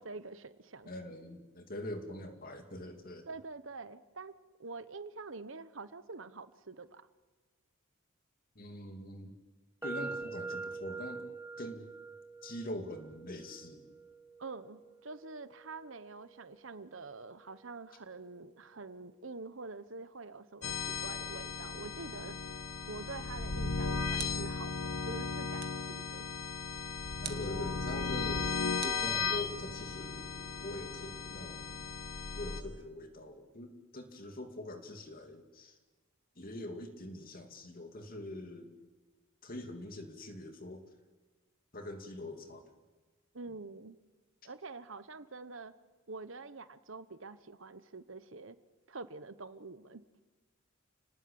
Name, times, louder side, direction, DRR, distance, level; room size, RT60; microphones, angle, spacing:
voice 1, 0.0-0.9 3.3-7.0 14.4-22.4 22.9-26.2 43.3-44.0 44.4-45.7 46.1-48.6 48.9-50.0, right 3 dB, 65° right, 13 dB, 1.1 m, -46 dB
voice 2, 0.8-3.3 8.5-9.4 9.8-11.3 11.6-11.8 12.4-14.0 27.2-28.5 28.8-31.9 32.4-35.8 36.4-38.8 39.4-40.8 41.7-42.6, left 1 dB, 45° left, 5 dB, 2.7 m, -43 dB
sound 1, 9.8-17.7, right 4 dB, 10° right, 2.0 m, -46 dB
sound 2, 20.6-32.6, left 4 dB, 80° left, 1.5 m, -36 dB
sound 3, 23.5-24.7 25.6-25.9 27.2-27.6 28.8-29.7, right 11 dB, 45° right, 1.8 m, -47 dB
29.5 x 19.0 x 8.7 m, 1.3 s
head